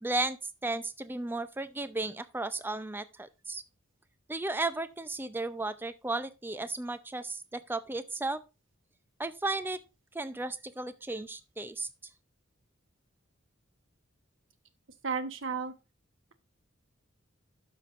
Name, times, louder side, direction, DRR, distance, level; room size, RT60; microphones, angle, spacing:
voice 1, 0.0-3.6 4.3-8.4 9.2-9.8 10.1-11.9, right 2 dB, 10° right, 0.5 m, -34 dB
voice 2, 15.0-15.7, right 5 dB, 65° right, 1.1 m, -33 dB
12.0 x 5.9 x 2.5 m
head